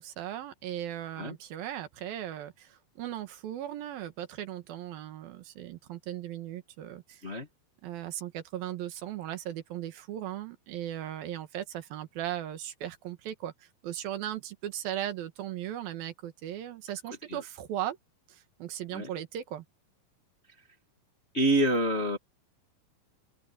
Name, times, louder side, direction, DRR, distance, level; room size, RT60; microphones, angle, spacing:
voice 1, 0.0-7.2 7.8-13.5 13.8-18.0 18.3-19.6, right 12 dB, 80° right, 3.2 m, -37 dB
voice 2, 21.3-22.2, right 1 dB, 30° left, 1.2 m, -27 dB
open air
omnidirectional pair, 4.2 m